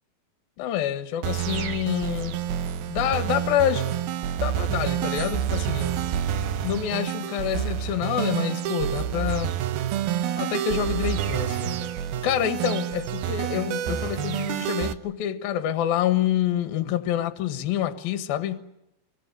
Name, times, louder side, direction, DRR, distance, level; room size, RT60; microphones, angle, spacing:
voice 1, 0.6-2.4 2.9-3.9 4.4-6.0 6.6-9.5 10.4-11.8 12.2-18.6, left 11 dB, 65° left, 2.8 m, -27 dB
sound 1, 1.2-14.9, right 10 dB, 70° right, 2.7 m, -28 dB
29.0 x 23.5 x 6.7 m
omnidirectional pair, 5.0 m